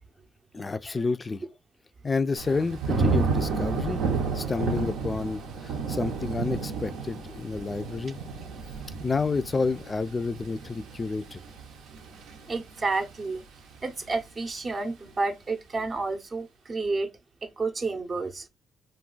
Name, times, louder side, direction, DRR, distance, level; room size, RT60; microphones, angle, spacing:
voice 1, 0.5-1.4 2.0-4.0 4.3-8.2 9.0-11.4, left 4 dB, 30° left, 0.3 m, -29 dB
Thunder / Rain, 2.4-13.3 13.7-14.2, right 4 dB, 85° right, 0.6 m, -31 dB
voice 2, 12.5-13.4 13.8-17.1 17.4-18.5, right 3 dB, 35° right, 0.6 m, -30 dB
2.3 x 2.2 x 3.8 m
cardioid pair, 90°, 0 cm